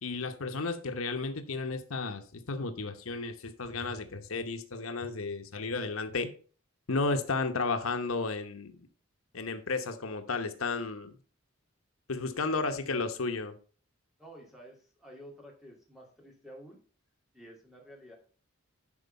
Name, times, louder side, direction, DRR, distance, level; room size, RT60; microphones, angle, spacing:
voice 1, 0.0-6.3 6.9-8.9 9.3-11.2 12.1-13.6, left 3 dB, 85° left, 1.0 m, -33 dB
voice 2, 14.2-16.8 17.3-18.2, equal, ahead, 2.5 m, -51 dB
11.0 x 4.6 x 5.3 m
head